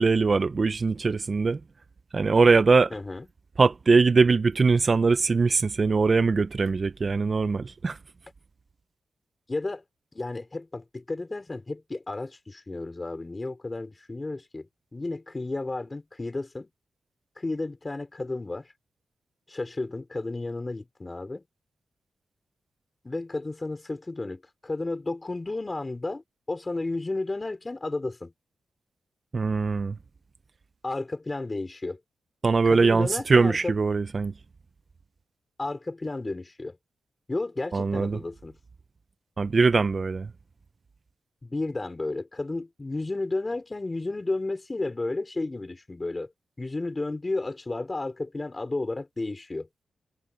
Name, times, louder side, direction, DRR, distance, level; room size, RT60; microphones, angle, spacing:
voice 1, 0.0-1.6 2.1-2.9 3.6-8.0 29.3-30.0 32.4-34.3 37.7-38.2 39.4-40.3, right 4 dB, 30° right, 0.5 m, -22 dB
voice 2, 2.9-3.3 9.5-9.8 10.1-16.7 17.4-18.7 19.5-21.4 23.0-28.3 30.8-32.0 32.6-33.8 35.6-36.8 37.3-38.6 41.4-46.3 46.6-49.7, left 2 dB, 20° left, 5.3 m, -32 dB
wide cardioid pair, 175°, 0 cm